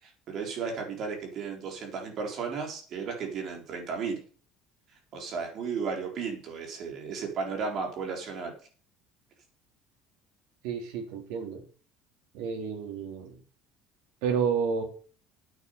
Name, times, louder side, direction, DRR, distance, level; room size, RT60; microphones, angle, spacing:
voice 1, 0.0-4.2 5.1-8.5, right 5 dB, 40° right, 2 dB, 4.0 m, -34 dB
voice 2, 10.6-11.6 12.3-13.3 14.2-14.8, right 6 dB, 85° right, 2 dB, 4.0 m, -30 dB
9.4 x 8.6 x 6.7 m, 0.40 s
cardioid pair, 170°, 0 cm